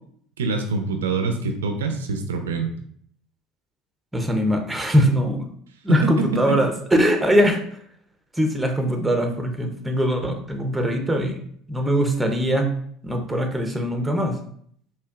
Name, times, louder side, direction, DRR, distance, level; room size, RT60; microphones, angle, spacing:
voice 1, 0.4-2.7 5.9-6.3, right 4 dB, 85° right, 5 dB, 0.4 m, -25 dB
voice 2, 4.1-5.5 5.8-7.6 8.4-11.4 11.7-12.7 13.0-14.4, equal, 10° right, 4 dB, 0.7 m, -21 dB
4.4 x 2.9 x 2.4 m, 0.63 s
hypercardioid pair, 70°, 0 cm